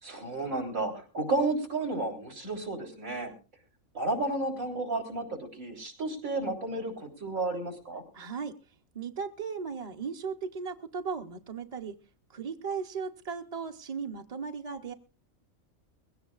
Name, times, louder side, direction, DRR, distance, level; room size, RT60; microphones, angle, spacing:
voice 1, 0.0-3.3 3.9-8.0, right 2 dB, 85° right, 1 dB, 4.0 m, -32 dB
voice 2, 8.1-12.0 12.3-14.9, right 5 dB, 35° right, 3 dB, 0.7 m, -37 dB
21.5 x 17.0 x 2.4 m, 0.32 s
omnidirectional pair, 1.4 m